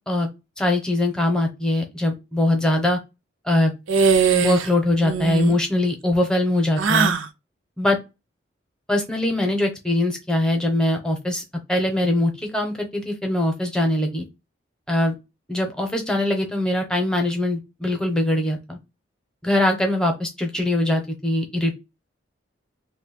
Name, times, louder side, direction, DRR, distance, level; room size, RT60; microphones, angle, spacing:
voice 1, 0.6-3.0 3.4-3.7 4.4-7.1 7.8-8.0 8.9-11.4 11.7-14.2 14.9-15.1 15.5-18.8 19.4-21.7, left 1 dB, 5° left, 3 dB, 0.7 m, -22 dB
sound 1, 3.9-4.7 5.0-5.6 6.8-7.3, right 5 dB, 90° right, 0.5 m, -20 dB
3.0 x 2.2 x 4.1 m, 0.24 s
head